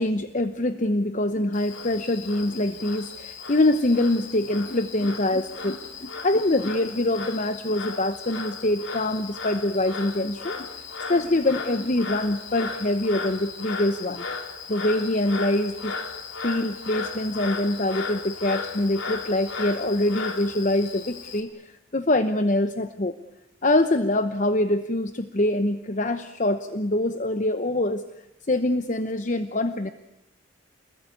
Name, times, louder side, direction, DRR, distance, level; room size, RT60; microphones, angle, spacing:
voice 1, 0.0-10.7 11.1-14.2 14.7-16.0 16.4-23.1 23.6-28.0 28.5-29.9, left 1 dB, 40° left, 10 dB, 0.9 m, -24 dB
Frog, 1.5-21.4, left 5 dB, 75° left, 3.6 m, -36 dB
29.0 x 21.0 x 9.5 m, 0.89 s
head